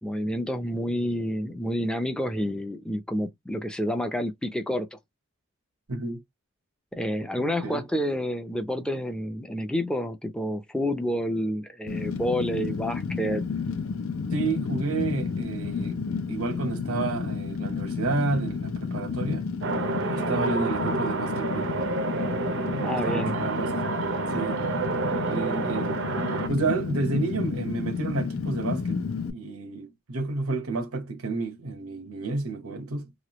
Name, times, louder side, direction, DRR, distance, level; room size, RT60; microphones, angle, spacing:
voice 1, 0.0-5.0 6.9-13.4 22.8-23.4, equal, 5° left, 0.5 m, -29 dB
voice 2, 5.9-6.2 7.6-7.9 14.3-19.5 20.1-21.7 22.7-23.7 24.3-24.8 25.1-26.0 26.5-29.0 29.3-33.1, right 3 dB, 85° right, 0.8 m, -30 dB
Fire, 11.9-29.3, left 5 dB, 75° left, 0.5 m, -31 dB
sound 1, 19.6-26.5, right 4 dB, 60° right, 0.5 m, -29 dB
3.1 x 2.3 x 2.9 m
head